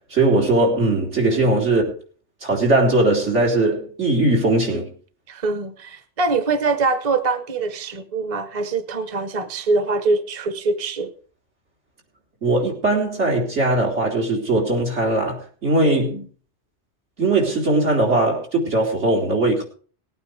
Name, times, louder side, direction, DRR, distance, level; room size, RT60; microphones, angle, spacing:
voice 1, 0.1-1.8 2.4-4.9 12.4-16.2 17.2-19.6, right 2 dB, 80° right, 4.0 m, -19 dB
voice 2, 4.5-4.8 5.3-11.1 15.9-16.2, right 3 dB, 30° right, 1.0 m, -24 dB
19.0 x 8.9 x 4.9 m
omnidirectional pair, 1.2 m